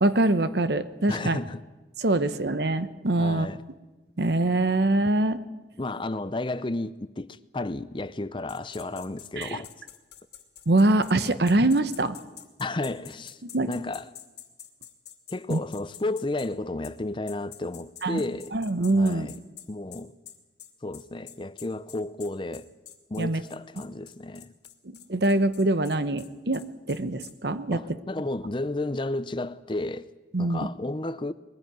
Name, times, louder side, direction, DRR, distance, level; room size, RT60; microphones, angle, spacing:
voice 1, 0.0-1.4 2.0-3.5 4.2-5.4 9.4-9.6 10.7-12.2 13.5-13.7 15.5-15.6 18.0-18.2 18.5-19.3 23.2-23.4 25.1-28.0 30.3-30.6, right 2 dB, 65° right, 1.0 m, -24 dB
voice 2, 1.1-1.6 3.2-3.6 5.8-9.7 12.6-13.4 13.7-14.1 15.3-18.5 18.9-19.3 19.7-20.1 20.8-22.7 23.1-24.5 27.7-30.1 30.4-31.3, left 2 dB, 25° left, 0.6 m, -32 dB
sound 1, 8.5-16.5 16.8-17.0 17.3-27.3, left 11 dB, 65° left, 2.3 m, -47 dB
21.0 x 16.0 x 9.2 m
head